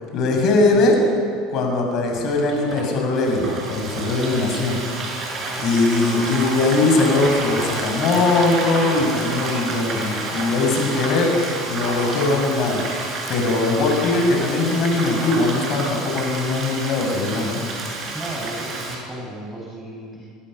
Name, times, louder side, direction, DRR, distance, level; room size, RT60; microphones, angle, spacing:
voice 1, 0.1-1.0 1.5-4.8 5.6-11.3 11.7-17.6, left 3 dB, 50° left, 1 dB, 7.1 m, -20 dB
Frying (food), 2.3-19.0, right 2 dB, 40° right, 7.7 m, -29 dB
voice 2, 5.4-6.4 18.1-20.2, right 1 dB, 10° right, -4 dB, 5.7 m, -35 dB
26.5 x 21.5 x 6.8 m, 2.3 s
figure-of-eight pair, 70°, 0 cm